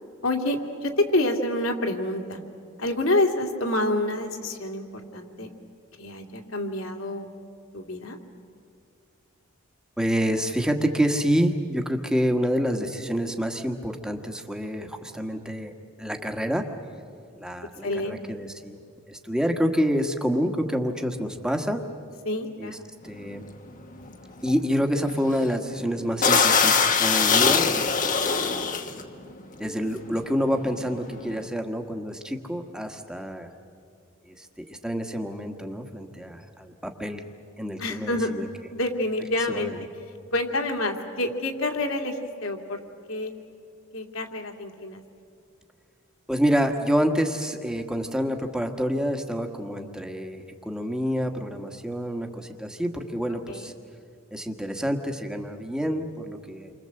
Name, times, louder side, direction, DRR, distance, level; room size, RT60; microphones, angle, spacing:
voice 1, 0.2-2.4 2.8-5.5 5.9-7.3 7.7-8.2 17.8-18.2 22.2-22.8 37.8-38.4 38.7-39.7 40.3-42.8 43.1-43.3 43.9-45.0 53.3-53.7, left 1 dB, 65° left, 4 dB, 2.7 m, -28 dB
voice 2, 10.0-15.7 16.0-16.7 17.4-18.8 19.1-21.8 22.6-22.7 23.0-23.4 24.4-28.7 29.6-33.5 34.3-37.2 37.6-38.5 39.5-39.8 46.3-53.7 54.3-56.7, equal, 5° right, 4 dB, 1.6 m, -27 dB
sound 1, 23.2-23.5 23.9-24.1 24.4-24.6 25.1-25.4 25.8-25.9 26.2-29.0 29.8-30.0 30.2-31.4, left 5 dB, 35° left, 1.3 m, -22 dB
29.0 x 25.0 x 7.8 m, 2.4 s
head